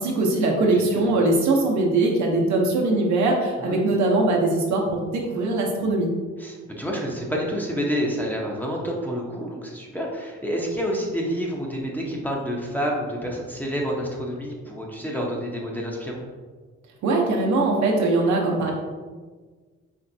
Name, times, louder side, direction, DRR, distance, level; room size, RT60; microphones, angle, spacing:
voice 1, 0.0-6.1 17.0-18.7, right 2 dB, 70° right, -1 dB, 0.9 m, -21 dB
voice 2, 0.6-1.0 3.6-3.8 6.4-16.2, equal, 5° left, -2 dB, 0.7 m, -28 dB
4.4 x 3.1 x 2.6 m, 1.4 s
cardioid pair, 90°, 30 cm